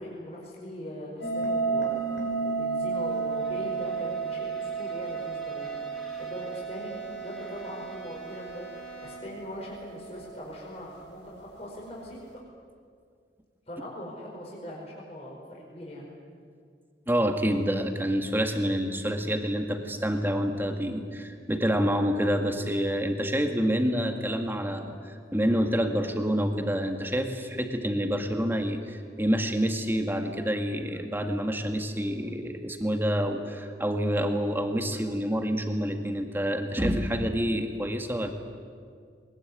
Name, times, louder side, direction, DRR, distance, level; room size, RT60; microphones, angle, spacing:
voice 1, 0.0-12.2 13.7-16.1, equal, 35° left, -4 dB, 5.1 m, -41 dB
sound 1, 1.2-10.5, right 5 dB, 90° left, 5.5 m, -32 dB
Bowed string instrument, 3.0-9.5, equal, 5° left, 4.1 m, -50 dB
voice 2, 17.1-38.3, equal, 10° right, 5 dB, 1.9 m, -27 dB
21.5 x 20.5 x 9.6 m, 2.1 s
head